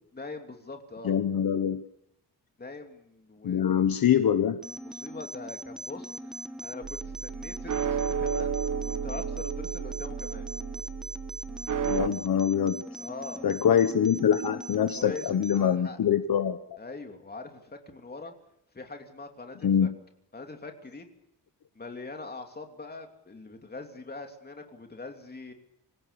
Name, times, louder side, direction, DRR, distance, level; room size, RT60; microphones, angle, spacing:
voice 1, 0.1-1.2 2.6-3.8 4.8-6.3 6.6-8.6 8.8-10.5 12.9-13.5 14.9-16.0 16.8-18.3 18.7-19.9 20.3-21.1 21.7-25.5, left 3 dB, 25° left, 4 dB, 3.1 m, -42 dB
voice 2, 1.0-1.8 3.4-4.6 11.8-12.8 13.4-16.8 19.6-19.9, left 8 dB, 60° left, 9 dB, 1.2 m, -24 dB
sound 1, 4.6-15.6, right 1 dB, ahead, 1.3 m, -42 dB
sound 2, 6.8-12.1, right 7 dB, 50° right, 1.3 m, -32 dB
26.5 x 16.5 x 7.1 m, 0.76 s
wide cardioid pair, 155°, 40 cm